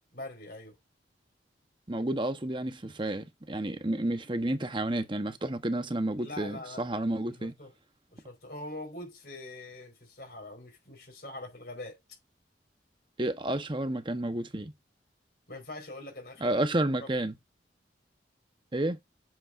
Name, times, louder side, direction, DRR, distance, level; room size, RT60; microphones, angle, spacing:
voice 1, 0.1-0.8 6.2-7.0 7.4-7.7 8.1-12.0 15.5-16.6 17.0-17.1, left 2 dB, 55° left, 4.7 m, -43 dB
voice 2, 1.9-7.5 13.2-14.7 16.4-17.3 18.7-19.0, right 1 dB, 25° right, 0.9 m, -31 dB
8.0 x 7.3 x 2.5 m
head